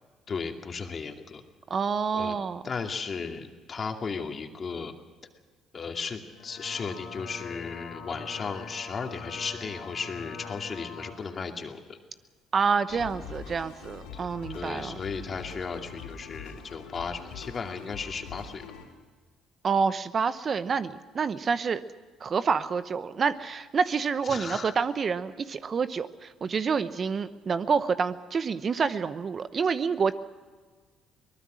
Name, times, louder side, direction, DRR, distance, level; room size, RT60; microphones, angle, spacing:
voice 1, 0.3-1.4 2.1-2.3 2.6-4.9 5.7-12.0 12.9-13.0 14.1-14.3 14.5-18.6 24.3-24.7, left 5 dB, 40° left, 4 dB, 2.6 m, -35 dB
voice 2, 1.7-2.6 12.5-15.0 19.6-21.8 22.2-30.1, right 5 dB, 45° right, 13 dB, 0.9 m, -28 dB
sound 1, 6.2-11.2, left 5 dB, 65° left, 3.9 m, -43 dB
sound 2, 12.9-18.9, left 6 dB, 85° left, 4.2 m, -43 dB
23.0 x 19.5 x 6.4 m, 1.4 s
hypercardioid pair, 60°, 0 cm